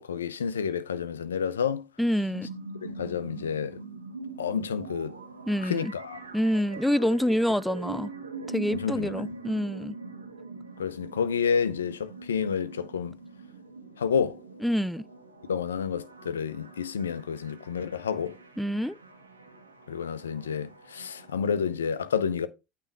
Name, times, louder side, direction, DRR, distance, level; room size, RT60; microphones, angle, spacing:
voice 1, 0.0-1.8 2.8-3.8 4.4-5.2 5.6-6.2 7.0-7.1 8.7-9.3 10.8-13.2 14.0-14.4 15.5-18.4 19.9-22.5, left 7 dB, 80° left, 0.7 m, -29 dB
voice 2, 2.0-2.5 5.5-5.9 6.3-8.1 8.5-10.0 14.6-15.0 18.6-19.0, equal, ahead, 0.4 m, -27 dB
sound 1, 2.3-21.3, right 3 dB, 90° right, 1.2 m, -43 dB
8.9 x 3.4 x 6.1 m
figure-of-eight pair, 70°, 0 cm